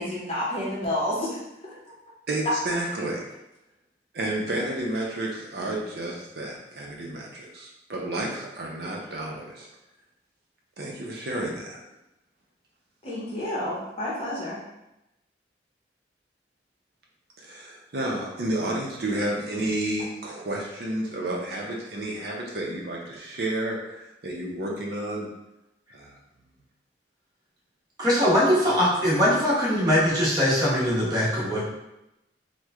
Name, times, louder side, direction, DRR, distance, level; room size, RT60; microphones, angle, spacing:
voice 1, 0.0-1.8 13.0-14.6, left 1 dB, 35° left, -6 dB, 0.8 m, -30 dB
voice 2, 2.3-3.3 4.1-9.7 10.8-11.8 17.4-25.3 25.9-26.2 28.6-28.8, right 1 dB, 60° right, -2 dB, 0.6 m, -31 dB
voice 3, 28.0-31.6, equal, 20° right, -7 dB, 1.0 m, -21 dB
3.0 x 2.1 x 3.5 m, 0.91 s
head